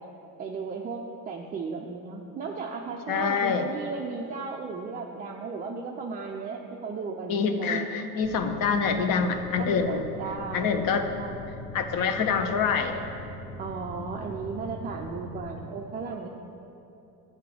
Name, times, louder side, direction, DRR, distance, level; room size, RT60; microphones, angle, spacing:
voice 1, 0.4-7.9 9.6-11.4 13.6-16.3, right 4 dB, 20° right, 0 dB, 0.4 m, -35 dB
voice 2, 3.1-3.7 7.3-10.0 10.5-11.1 11.7-12.9, left 5 dB, 45° left, 7 dB, 0.8 m, -26 dB
sound 1, 8.2-15.6, left 1 dB, 15° left, 1.9 m, -41 dB
9.3 x 3.7 x 7.1 m, 2.8 s
figure-of-eight pair, 65°, 49 cm